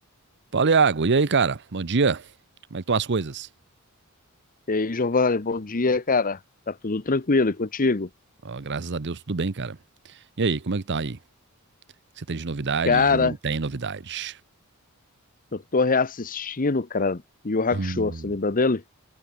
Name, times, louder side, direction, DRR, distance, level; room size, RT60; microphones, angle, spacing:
voice 1, 0.5-2.3 2.7-3.5 8.4-9.8 10.4-11.2 12.2-14.4 17.7-18.3, right 4 dB, 55° right, 0.8 m, -25 dB
voice 2, 4.7-6.4 6.7-8.1 12.9-13.3 15.5-18.8, left 4 dB, 40° left, 0.9 m, -23 dB
head